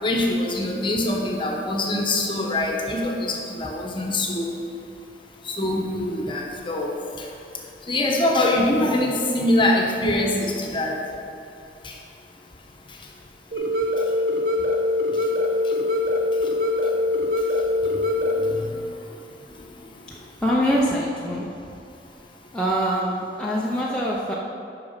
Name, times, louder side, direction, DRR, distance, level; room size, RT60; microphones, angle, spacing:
voice 1, 0.0-4.6 5.5-7.0 7.9-11.0 11.8-11.9 18.4-18.6, left 1 dB, 30° left, 0 dB, 1.1 m, -23 dB
sound 1, 13.5-18.5, left 2 dB, 50° right, 1.1 m, -23 dB
voice 2, 20.1-21.6 22.5-24.3, equal, 5° left, -6 dB, 0.7 m, -24 dB
8.4 x 6.0 x 5.7 m, 2.6 s
head